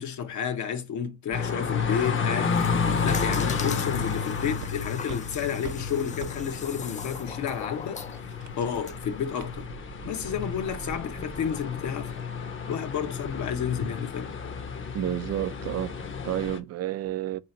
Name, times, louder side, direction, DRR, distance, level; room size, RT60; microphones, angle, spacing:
voice 1, 0.0-2.6 3.0-8.3 8.6-9.7 10.0-12.1 12.7-14.3, left 8 dB, 70° left, 0.9 m, -31 dB
sound 1, 1.3-16.6, left 5 dB, 40° left, 0.8 m, -31 dB
sound 2, 2.3-8.9, left 6 dB, 25° left, 0.3 m, -41 dB
sound 3, 4.6-12.0, right 8 dB, 80° right, 0.8 m, -46 dB
voice 2, 14.9-17.4, right 13 dB, 55° right, 0.4 m, -30 dB
3.9 x 2.9 x 4.2 m
cardioid pair, 90°, 30 cm